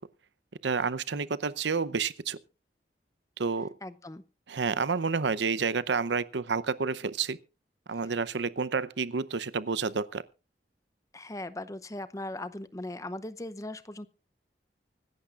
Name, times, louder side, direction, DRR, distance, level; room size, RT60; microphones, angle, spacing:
voice 1, 0.6-2.4 3.4-3.7 4.5-7.4 7.9-10.2, right 5 dB, 75° right, 0.7 m, -29 dB
voice 2, 3.8-4.2 7.9-8.1 11.1-14.1, left 1 dB, 20° left, 0.6 m, -39 dB
24.5 x 12.0 x 2.4 m
head